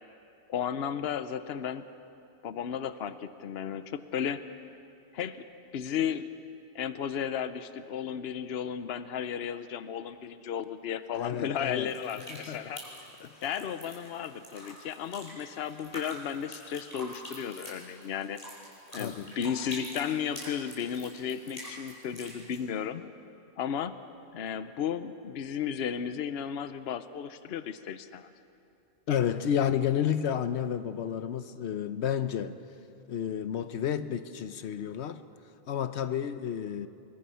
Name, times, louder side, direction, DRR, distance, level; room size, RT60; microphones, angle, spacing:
voice 1, 0.5-1.9 2.4-4.4 5.1-5.4 5.7-6.2 6.7-12.8 13.4-18.4 18.9-23.0 23.6-23.9 24.3-28.3, left 8 dB, 70° left, 1.0 m, -34 dB
voice 2, 11.1-11.9 12.3-12.6 13.2-13.4 19.0-19.3 29.1-32.6 33.1-35.2 35.7-36.9, left 9 dB, 90° left, 1.0 m, -31 dB
sound 1, 11.9-22.6, equal, 35° left, 6.0 m, -46 dB
25.5 x 23.0 x 5.7 m
omnidirectional pair, 1.1 m